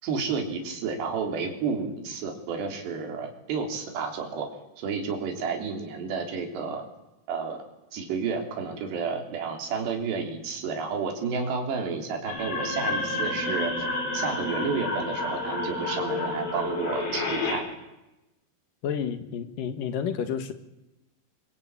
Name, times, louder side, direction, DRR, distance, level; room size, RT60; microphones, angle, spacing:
voice 1, 0.0-4.5 4.8-6.8 7.3-7.6 7.9-13.7 14.1-17.7, right 5 dB, 80° right, 3 dB, 5.6 m, -31 dB
sound 1, 12.3-17.5, left 2 dB, 80° left, 7.8 m, -30 dB
voice 2, 18.8-20.5, left 7 dB, 60° left, 10 dB, 3.0 m, -30 dB
23.5 x 23.5 x 8.8 m, 0.95 s
omnidirectional pair, 4.8 m